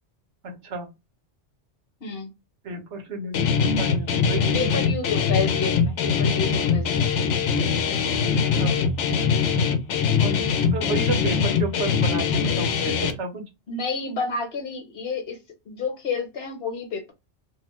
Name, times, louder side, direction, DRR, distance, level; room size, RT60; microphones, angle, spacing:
voice 1, 0.4-0.9 2.6-4.8 8.5-8.8 10.2-13.5, right 3 dB, 85° right, 1.2 m, -32 dB
Guitar, 3.3-13.1, left 6 dB, 90° left, 0.9 m, -22 dB
voice 2, 4.5-7.2 13.7-15.4 15.7-17.1, left 4 dB, 65° left, 1.1 m, -30 dB
2.9 x 2.0 x 3.0 m
omnidirectional pair, 1.2 m